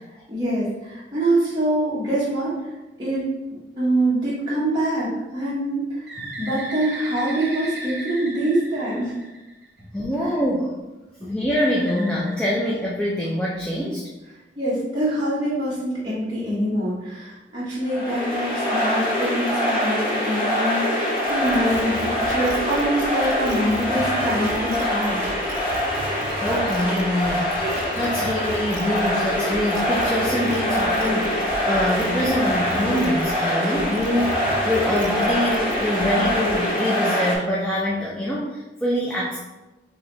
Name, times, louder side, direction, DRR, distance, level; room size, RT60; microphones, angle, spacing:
voice 1, 0.3-2.7 3.0-3.3 3.8-9.1 10.2-10.4 11.2-11.3 14.5-25.3, right 1 dB, 25° right, -10 dB, 1.2 m, -25 dB
Bird, 6.1-9.8 11.5-13.3, right 2 dB, 65° right, 1.0 m, -36 dB
voice 2, 9.9-10.7 11.2-14.0 26.4-27.5 28.0-39.4, left 1 dB, 5° left, -5 dB, 0.5 m, -24 dB
sound 1, 17.8-37.3, equal, 25° left, 1.4 m, -24 dB
sound 2, 21.3-33.4 33.8-36.6, right 2 dB, 90° right, 0.5 m, -38 dB
4.1 x 2.9 x 4.0 m, 1.1 s
head